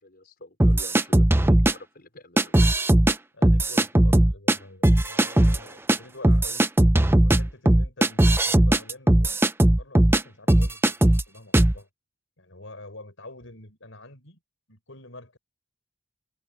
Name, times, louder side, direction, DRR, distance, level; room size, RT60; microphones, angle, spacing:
voice 1, 0.0-2.6, left 1 dB, 50° left, 5.0 m, -47 dB
sound 1, 0.6-1.7 2.4-3.1 3.4-4.6 4.8-5.6 5.9-6.0 6.2-10.2 10.5-11.2 11.5-11.8, right 1 dB, 10° right, 0.6 m, -18 dB
voice 2, 3.3-6.7 7.1-9.4 9.8-11.9 12.4-14.4 14.7-15.4, left 2 dB, 70° left, 6.3 m, -46 dB
head